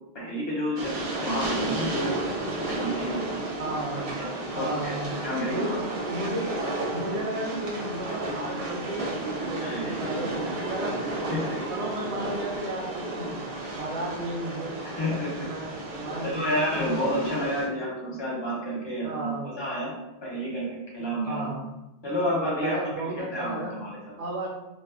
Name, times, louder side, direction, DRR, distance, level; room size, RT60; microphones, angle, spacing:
voice 1, 0.1-2.1 2.5-3.4 4.2-4.3 4.5-4.9 5.2-5.8 9.6-10.0 11.3-11.6 14.8-15.5 16.2-19.9 20.2-21.5 22.0-23.1 23.3-24.2, equal, 30° left, -5 dB, 0.7 m, -30 dB
Train, 0.8-17.7, right 2 dB, 55° right, 0.4 m, -32 dB
voice 2, 3.6-4.2 4.5-5.1 5.5-5.8 6.1-6.5 6.9-11.0 11.7-13.5 13.7-14.8 15.4-15.7 16.0-16.6 19.0-19.5 21.3-21.6 22.6-23.7 24.2-24.5, right 2 dB, 85° right, -2 dB, 0.9 m, -33 dB
2.4 x 2.3 x 2.4 m, 0.92 s
omnidirectional pair, 1.1 m